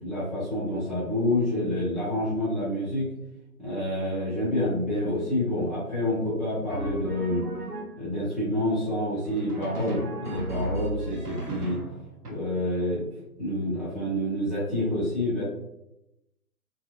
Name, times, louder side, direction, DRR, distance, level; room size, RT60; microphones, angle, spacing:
voice 1, 0.0-3.1 3.6-7.4 8.0-11.8 12.3-13.1 13.4-15.4, left 1 dB, ahead, -13 dB, 0.4 m, -28 dB
Drum, 6.7-8.2 9.2-12.3, right 1 dB, 90° right, 0.8 m, -34 dB
2.7 x 2.2 x 2.2 m, 0.87 s
figure-of-eight pair, 150°, 44 cm